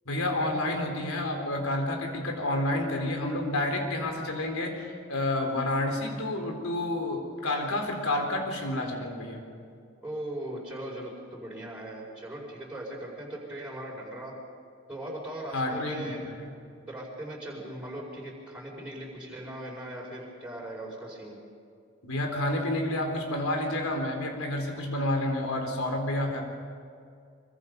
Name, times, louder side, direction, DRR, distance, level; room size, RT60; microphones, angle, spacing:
voice 1, 0.1-9.4 15.5-16.5 22.0-26.4, left 1 dB, 85° left, 3 dB, 4.2 m, -29 dB
voice 2, 10.0-14.3 14.9-16.2 16.9-21.4, right 1 dB, 5° right, -5 dB, 5.1 m, -39 dB
25.0 x 24.0 x 5.4 m, 2.3 s
head